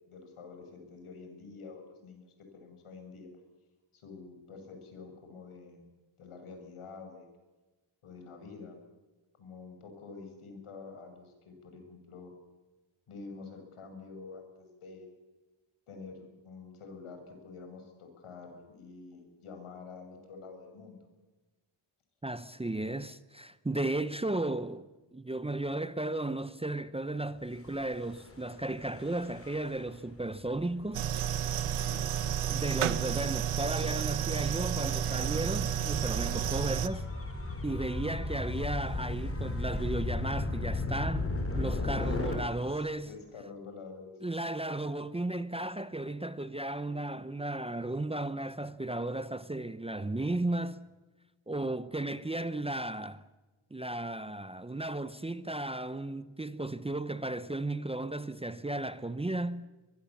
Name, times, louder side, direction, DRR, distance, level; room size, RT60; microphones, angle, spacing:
voice 1, 0.1-3.3 3.9-5.8 6.2-7.3 8.0-8.8 9.4-12.3 13.1-15.1 15.9-21.1 31.4-32.1 41.7-42.4 42.7-44.2, left 4 dB, 85° left, 6.3 m, -48 dB
voice 2, 22.2-31.0 32.5-37.1 37.6-41.3 41.6-43.1 44.2-50.8 51.5-53.2 53.7-59.6, right 2 dB, 10° right, 0.7 m, -34 dB
Gull seagull / Waves surf / Siren, 27.6-42.3, left 2 dB, 25° left, 4.7 m, -37 dB
sound 1, 30.9-36.9, right 10 dB, 90° right, 1.2 m, -31 dB
23.0 x 22.5 x 7.2 m
wide cardioid pair, 150°, 49 cm